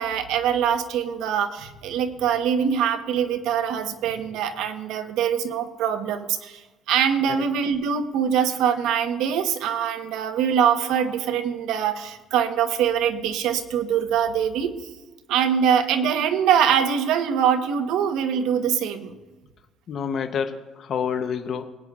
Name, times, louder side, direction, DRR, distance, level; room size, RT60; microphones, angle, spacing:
voice 1, 0.0-6.6 6.9-14.8 15.3-19.1, right 8 dB, 80° right, 8 dB, 1.0 m, -23 dB
voice 2, 19.9-21.6, left 7 dB, 50° left, 7 dB, 0.8 m, -28 dB
20.5 x 9.6 x 2.4 m, 1.2 s
cardioid pair, 130°, 0 cm